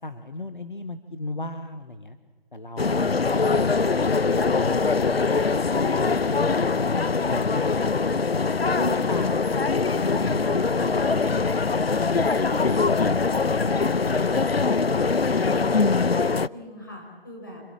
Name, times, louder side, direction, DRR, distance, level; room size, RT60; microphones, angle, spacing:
voice 1, 0.0-2.2 2.5-5.4 7.3-8.1 8.8-9.5 9.9-14.5, left 2 dB, 55° left, 8 dB, 1.5 m, -36 dB
sound 1, 2.8-16.5, left 4 dB, 85° left, 0.8 m, -22 dB
voice 2, 16.5-17.6, left 1 dB, 20° left, -1 dB, 5.5 m, -44 dB
27.0 x 24.0 x 7.6 m, 1.3 s
figure-of-eight pair, 175°, 29 cm